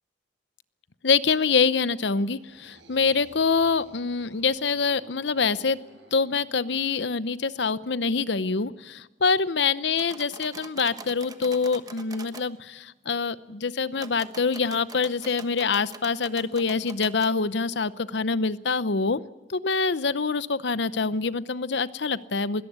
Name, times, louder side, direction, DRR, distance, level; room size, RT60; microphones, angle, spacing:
voice 1, 1.0-5.8 6.1-19.2 19.5-22.6, left 4 dB, 70° left, 16 dB, 0.8 m, -25 dB
sound 1, 2.3-7.1, right 2 dB, 90° right, 7.5 m, -55 dB
sound 2, 9.9-12.5 13.9-17.3, right 3 dB, 20° right, 1.2 m, -44 dB
21.0 x 18.0 x 8.2 m, 1.1 s
head